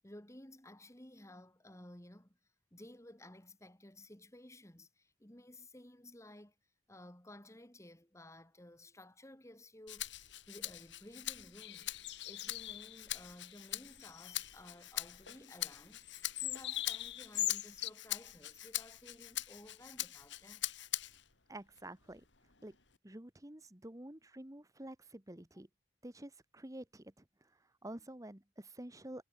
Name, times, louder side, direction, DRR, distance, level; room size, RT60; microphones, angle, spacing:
voice 1, 0.0-2.4 2.7-6.5 6.9-10.1 10.5-20.6, left 1 dB, 15° left, 2.7 m, -55 dB
Rattle (instrument), 9.9-21.3 21.8-23.0, left 14 dB, 90° left, 4.1 m, -43 dB
sound 1, 11.6-13.0 13.4-13.6 13.9-14.5 16.0-17.9, left 14 dB, 70° left, 1.1 m, -40 dB
voice 2, 21.5-22.2 22.6-22.7 23.0-25.7 26.0-29.2, right 1 dB, 20° right, 1.4 m, -49 dB
head